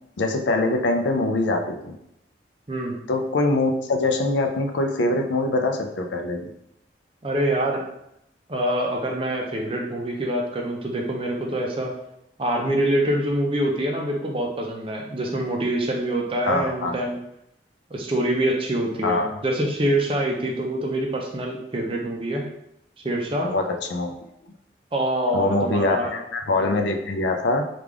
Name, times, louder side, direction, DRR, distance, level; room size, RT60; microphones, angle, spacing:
voice 1, 0.2-2.0 3.1-6.5 16.5-17.0 19.0-19.3 23.4-24.1 25.3-27.6, left 2 dB, 85° left, 5 dB, 0.4 m, -23 dB
voice 2, 2.7-3.0 7.2-7.8 8.5-12.0 12.4-17.2 17.9-22.4 23.0-23.5 24.9-26.2, right 1 dB, 30° right, 1 dB, 0.5 m, -25 dB
3.3 x 2.4 x 3.5 m, 0.81 s
head